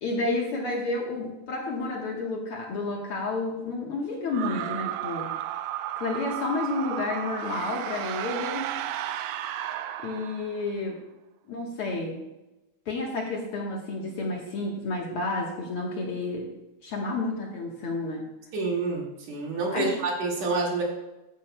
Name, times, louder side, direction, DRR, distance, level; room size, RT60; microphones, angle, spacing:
voice 1, 0.0-5.3 6.0-8.7 10.0-11.0 11.5-12.2 12.9-16.5 16.8-18.3 19.7-19.9, left 3 dB, 55° left, -1 dB, 1.8 m, -30 dB
sound 1, 4.3-10.7, right 12 dB, 85° right, 1.4 m, -33 dB
voice 2, 18.5-20.8, right 3 dB, 65° right, -2 dB, 3.2 m, -28 dB
13.5 x 10.5 x 2.2 m, 0.99 s
omnidirectional pair, 3.4 m